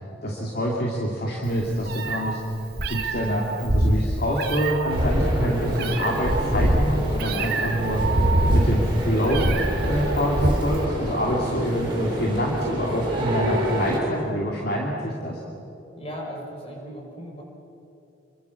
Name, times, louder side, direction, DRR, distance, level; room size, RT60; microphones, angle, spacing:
voice 1, 0.0-2.4 2.9-9.5 9.8-15.4, equal, 50° left, -2 dB, 2.7 m, -26 dB
Meow, 1.5-10.8, right 1 dB, 55° right, 1.9 m, -24 dB
sound 1, 4.9-14.0, right 1 dB, 25° right, 6.3 m, -29 dB
voice 2, 16.0-17.4, equal, 30° left, 0 dB, 5.4 m, -37 dB
28.5 x 23.0 x 7.2 m, 2.9 s
head